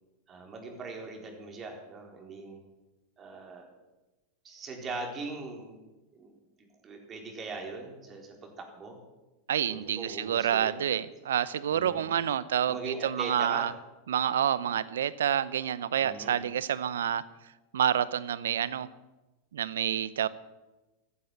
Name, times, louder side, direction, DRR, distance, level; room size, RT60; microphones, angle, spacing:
voice 1, 0.3-2.6 3.2-3.7 4.4-5.8 6.1-6.3 6.6-9.0 9.7-10.8 11.7-12.1 12.7-13.7 16.0-16.4, right 3 dB, 30° right, 1 dB, 4.2 m, -40 dB
voice 2, 9.5-13.7 14.1-17.2 17.7-18.9 19.5-20.3, right 9 dB, 75° right, 18 dB, 0.7 m, -28 dB
14.5 x 9.9 x 7.7 m, 1.1 s
hypercardioid pair, 95°, 0 cm